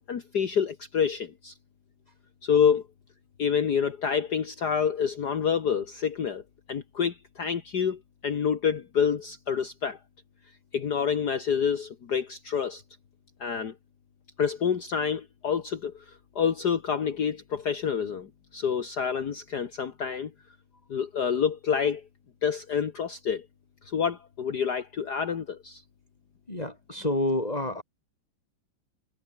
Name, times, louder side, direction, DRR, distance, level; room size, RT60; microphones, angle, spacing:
voice 1, 0.1-1.5 2.4-2.8 3.4-6.4 6.7-10.0 10.7-12.8 13.4-13.7 14.4-20.3 20.9-22.0 22.4-23.5 23.9-25.8, left 7 dB, 55° left, 2.1 m, -28 dB
voice 2, 26.5-27.8, left 1 dB, 20° left, 5.9 m, -28 dB
omnidirectional pair, 2.2 m